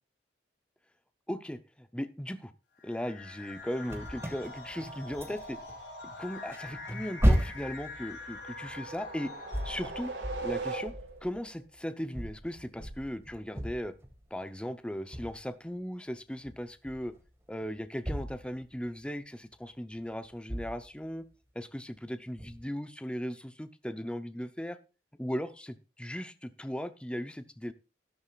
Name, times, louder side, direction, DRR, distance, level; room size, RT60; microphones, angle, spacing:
voice 1, 1.3-2.5 2.8-5.6 6.0-9.3 9.6-10.1 10.4-10.9 11.2-13.9 14.3-17.2 17.5-21.3 21.5-24.8 25.2-27.7, equal, 5° left, 10 dB, 0.7 m, -37 dB
sound 1, 2.8-10.4, left 3 dB, 90° left, 4.9 m, -45 dB
sound 2, 3.8-5.7 6.1-11.6 12.1-14.4 15.1-15.5 16.4-17.3 17.6-19.0 19.9-20.0 20.5-21.0 22.4-22.6, equal, 15° right, 1.8 m, -34 dB
sound 3, 8.1-11.4, right 3 dB, 75° right, 2.0 m, -39 dB
13.0 x 12.5 x 2.4 m, 0.31 s
head